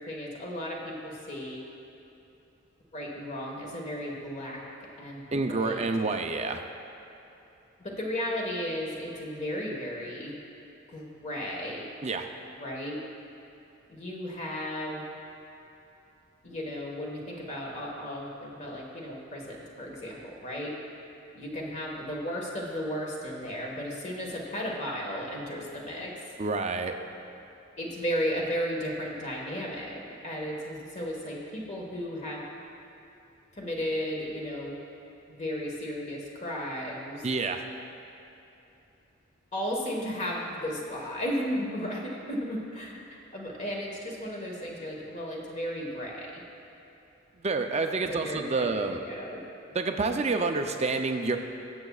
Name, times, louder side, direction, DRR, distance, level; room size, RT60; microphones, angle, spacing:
voice 1, 0.0-1.6 2.9-4.6 5.0-5.2 5.5-5.8 7.8-10.3 10.9-11.9 12.6-13.0 13.9-15.0 16.4-20.7 21.3-26.1 27.8-32.4 33.5-34.7 35.3-37.2 39.5-46.4 48.1-49.4, equal, 35° left, -2 dB, 1.5 m, -34 dB
voice 2, 5.3-6.6 12.0-12.3 26.4-27.0 37.2-37.6 47.4-49.0 49.7-51.4, right 3 dB, 30° right, 5 dB, 0.5 m, -28 dB
20.5 x 7.2 x 2.4 m, 3.0 s
head